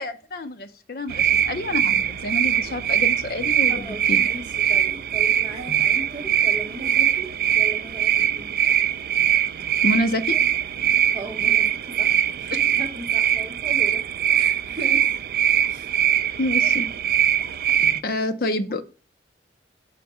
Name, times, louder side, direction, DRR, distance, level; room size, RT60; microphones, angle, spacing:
voice 1, 0.0-4.2 5.7-5.8 9.8-10.4 16.4-16.9 17.8-18.8, left 1 dB, 55° left, 9 dB, 0.6 m, -28 dB
sound 1, 1.1-18.0, right 10 dB, 55° right, 0.3 m, -22 dB
voice 2, 3.7-8.6 11.1-15.1 15.7-15.9, right 1 dB, 25° right, -3 dB, 0.8 m, -37 dB
5.7 x 4.1 x 5.4 m, 0.37 s
head